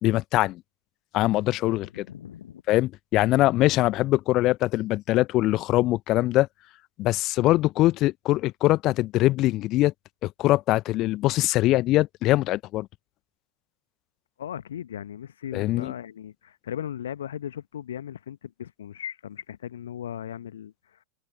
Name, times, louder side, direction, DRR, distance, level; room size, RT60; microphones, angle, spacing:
voice 1, 0.0-0.6 1.1-2.0 2.7-6.5 7.0-9.9 10.2-12.9 15.5-15.9, left 17 dB, 35° left, 0.9 m, -22 dB
voice 2, 1.7-2.6 14.4-21.0, left 10 dB, 65° left, 1.2 m, -37 dB
figure-of-eight pair, 90°, 0 cm